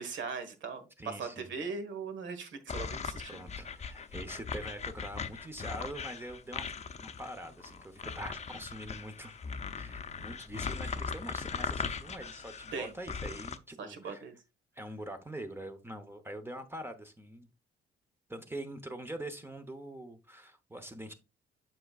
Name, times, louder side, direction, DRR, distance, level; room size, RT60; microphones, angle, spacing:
voice 1, 0.0-3.5 12.7-12.9 13.8-14.3, right 5 dB, 70° right, 1.4 m, -39 dB
voice 2, 1.0-1.5 3.3-6.7 7.0-9.4 9.7-14.2 14.8-17.5 18.3-21.1, right 1 dB, 10° right, 0.9 m, -44 dB
sound 1, 2.7-13.6, left 5 dB, 35° left, 0.6 m, -39 dB
7.7 x 5.9 x 2.4 m
cardioid pair, 90°, 20 cm